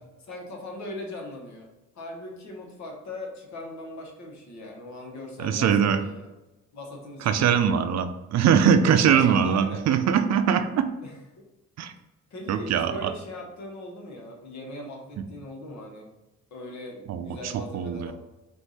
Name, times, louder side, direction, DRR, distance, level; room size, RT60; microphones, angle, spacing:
voice 1, 0.2-1.7 1.9-6.3 6.7-7.8 8.8-9.8 11.0-11.5 12.3-16.1 16.5-18.1, left 1 dB, 65° left, 1 dB, 1.4 m, -40 dB
voice 2, 5.4-6.0 7.3-10.9 11.8-11.9 12.5-13.1 17.1-18.1, right 7 dB, 60° right, 9 dB, 0.5 m, -22 dB
4.5 x 2.7 x 4.1 m, 1.0 s
cardioid pair, 90°, 30 cm